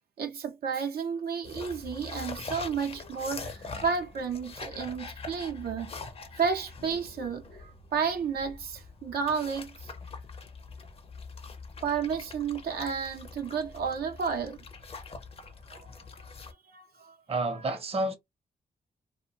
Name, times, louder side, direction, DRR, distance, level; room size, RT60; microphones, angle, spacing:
voice 1, 0.2-5.9 6.4-9.9 11.8-14.6 15.7-15.9 16.2-17.1 17.5-17.8, right 6 dB, 85° right, 0.6 m, -32 dB
sound 1, 1.4-16.5, left 4 dB, 40° left, 0.5 m, -44 dB
voice 2, 17.3-18.1, right 2 dB, 40° right, 0.7 m, -29 dB
2.5 x 2.1 x 2.7 m
wide cardioid pair, 105°, 16 cm